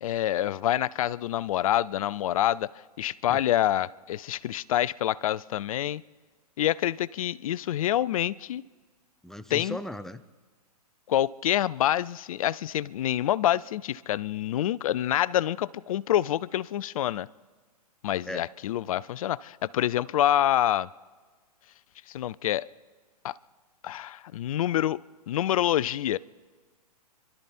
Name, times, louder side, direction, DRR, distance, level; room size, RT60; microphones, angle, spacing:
voice 1, 0.0-2.7 3.0-6.0 6.6-8.6 9.5-9.8 11.1-17.3 18.0-20.9 22.1-22.7 23.2-23.3 23.8-25.0 25.3-26.2, left 12 dB, 60° left, 20 dB, 0.5 m, -27 dB
voice 2, 9.2-10.2 18.3-18.4, left 1 dB, ahead, 11 dB, 0.4 m, -37 dB
26.5 x 12.5 x 4.3 m, 1.4 s
hypercardioid pair, 120°, 20 cm